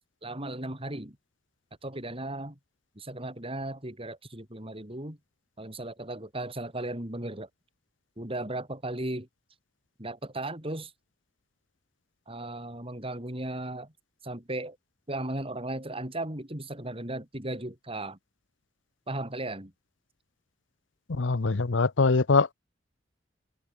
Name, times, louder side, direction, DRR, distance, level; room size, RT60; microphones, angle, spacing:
voice 1, 0.2-1.2 1.8-2.6 3.0-5.2 5.6-7.5 8.2-9.3 10.0-10.9 12.3-13.9 14.2-14.8 15.1-18.2 19.1-19.7, right 1 dB, 30° right, 5.7 m, -36 dB
voice 2, 21.1-22.5, left 4 dB, 85° left, 0.8 m, -23 dB
head